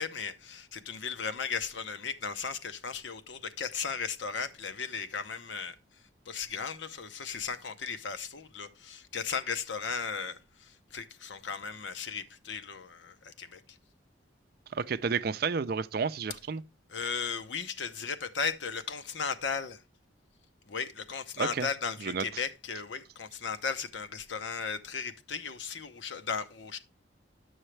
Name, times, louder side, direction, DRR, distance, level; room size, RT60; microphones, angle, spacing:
voice 1, 0.0-5.8 6.3-13.6 16.9-19.8 20.7-26.8, left 6 dB, 75° left, 0.8 m, -36 dB
voice 2, 14.7-16.6 21.4-21.7 22.0-22.2, right 5 dB, 55° right, 0.4 m, -31 dB
10.0 x 6.4 x 3.2 m
head